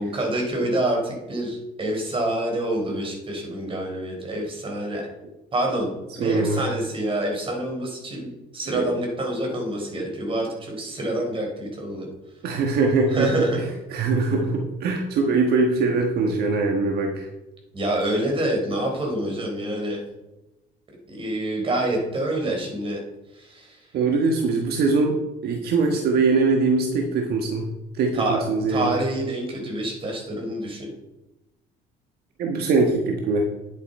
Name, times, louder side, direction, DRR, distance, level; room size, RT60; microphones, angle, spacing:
voice 1, 0.0-5.0 5.5-12.1 13.1-13.6 17.7-20.0 21.1-23.0 23.3-23.9 28.1-28.4 28.7-30.9, right 1 dB, 30° right, 0 dB, 3.9 m, -27 dB
voice 2, 6.2-6.6 8.7-8.9 12.4-13.6 13.9-17.3 23.9-25.2 25.4-27.7 27.9-28.9 32.4-33.4, right 3 dB, 70° right, 2 dB, 1.4 m, -22 dB
10.5 x 8.4 x 4.3 m, 0.98 s
cardioid pair, 110°, 17 cm